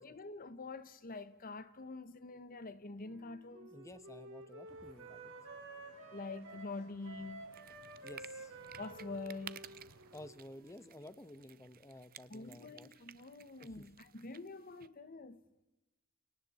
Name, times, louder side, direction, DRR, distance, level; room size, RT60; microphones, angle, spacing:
voice 1, 0.0-3.7 6.1-7.5 8.8-9.7 12.3-15.4, left 3 dB, 40° left, 1.0 m, -46 dB
Wind instrument woodwind instrument, 3.0-11.0, right 2 dB, 60° right, 4.5 m, -52 dB
voice 2, 3.7-5.2 8.0-8.6 10.1-12.9 13.6-13.9, left 1 dB, 15° left, 1.0 m, -53 dB
Vehicle horn car horn honking / Traffic noise roadway noise, 4.6-10.3, right 2 dB, 85° right, 3.2 m, -62 dB
sound 1, 7.5-14.9, right 9 dB, 45° right, 0.7 m, -56 dB
29.5 x 29.0 x 4.2 m
head